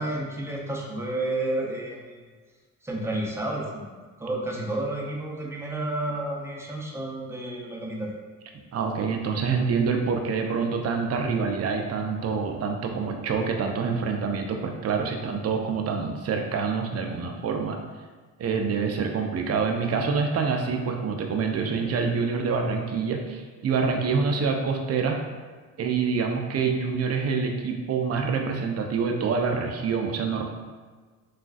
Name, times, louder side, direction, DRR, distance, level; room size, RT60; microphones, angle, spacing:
voice 1, 0.0-2.0 2.8-8.1, right 1 dB, 5° right, -3 dB, 0.7 m, -31 dB
voice 2, 8.7-17.8 18.4-25.2 25.8-30.4, right 5 dB, 35° right, 3 dB, 0.5 m, -26 dB
3.7 x 2.4 x 2.5 m, 1.4 s
supercardioid pair, 65°, 41 cm